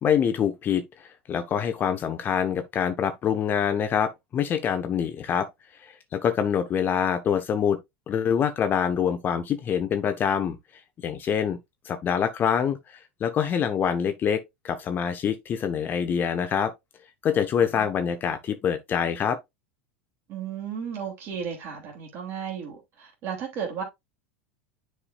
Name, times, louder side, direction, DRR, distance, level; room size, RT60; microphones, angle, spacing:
voice 1, 0.0-5.5 5.8-7.8 8.1-10.6 11.0-11.6 11.9-12.8 13.2-16.7 17.2-19.4, left 8 dB, 30° left, 0.9 m, -25 dB
voice 2, 20.3-23.8, right 7 dB, 40° right, 2.7 m, -34 dB
9.9 x 4.8 x 2.4 m
figure-of-eight pair, 85°, 6 cm